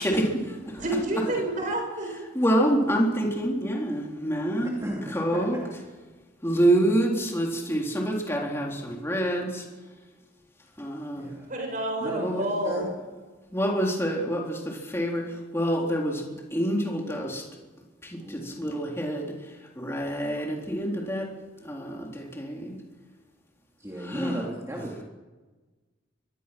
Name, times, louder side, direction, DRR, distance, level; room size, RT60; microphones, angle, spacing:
voice 1, 0.0-0.8 2.3-4.7 5.1-5.6 6.4-9.7 10.8-11.3 12.2-12.4 13.5-17.5 18.0-21.3 21.6-22.8 24.0-24.4, right 1 dB, 15° left, -1 dB, 3.8 m, -27 dB
voice 2, 0.8-2.3 5.3-5.4 11.5-12.9, right 1 dB, 40° right, 1 dB, 7.3 m, -29 dB
voice 3, 4.8-5.6 11.1-11.5 12.0-12.9 18.1-18.7 23.8-25.0, equal, 15° right, -3 dB, 2.9 m, -36 dB
24.0 x 22.0 x 6.1 m, 1.3 s
head